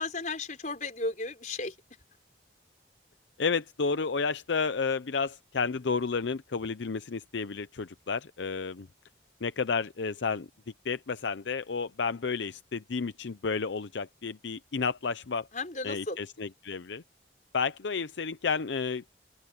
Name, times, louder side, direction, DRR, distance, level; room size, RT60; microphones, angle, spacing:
voice 1, 0.0-1.7 15.5-16.2, left 3 dB, 40° left, 4.9 m, -34 dB
voice 2, 3.4-8.9 9.4-10.5 10.8-15.5 15.8-17.0 17.5-19.0, left 5 dB, 80° left, 0.6 m, -31 dB
open air
head